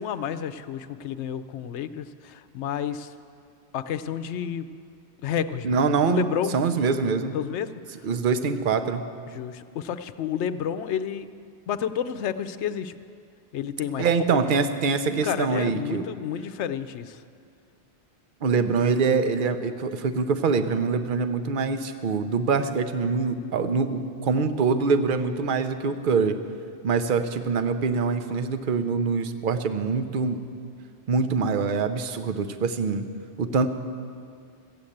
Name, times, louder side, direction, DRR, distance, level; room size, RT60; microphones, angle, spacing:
voice 1, 0.0-3.1 3.7-4.7 5.2-6.6 7.3-7.7 9.3-11.3 11.7-12.9 13.5-14.7 15.0-17.2, left 8 dB, 85° left, 12 dB, 0.9 m, -30 dB
voice 2, 5.6-6.3 6.5-7.4 8.0-9.0 14.0-16.0 18.4-26.4 26.8-30.4 31.1-33.1 33.4-33.7, right 5 dB, 55° right, 9 dB, 0.8 m, -24 dB
14.5 x 7.8 x 8.6 m, 2.3 s
omnidirectional pair, 1.1 m